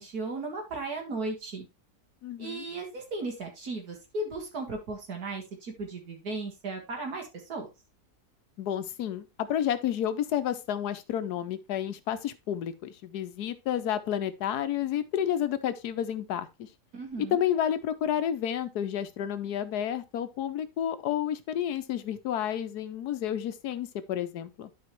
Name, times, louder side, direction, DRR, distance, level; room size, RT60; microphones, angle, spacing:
voice 1, 0.0-1.7 2.4-7.7 16.9-17.4, right 3 dB, 75° right, 2.3 m, -36 dB
voice 2, 2.2-2.6 8.6-16.7 17.2-24.7, left 10 dB, 90° left, 1.3 m, -30 dB
11.5 x 4.6 x 3.0 m
omnidirectional pair, 1.6 m